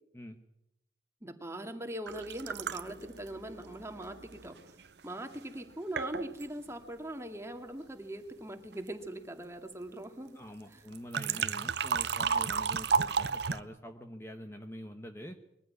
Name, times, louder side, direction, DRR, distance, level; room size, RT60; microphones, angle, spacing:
voice 1, 1.2-4.6 5.0-10.4 10.7-10.8, right 1 dB, 15° right, 6 dB, 2.2 m, -41 dB
sound 1, 2.1-4.9 5.6-5.7 6.0-6.5 10.9-13.6, right 6 dB, 65° right, 0.7 m, -33 dB
voice 2, 10.3-15.4, equal, 15° left, 6 dB, 1.1 m, -46 dB
22.5 x 15.0 x 9.6 m, 0.84 s
head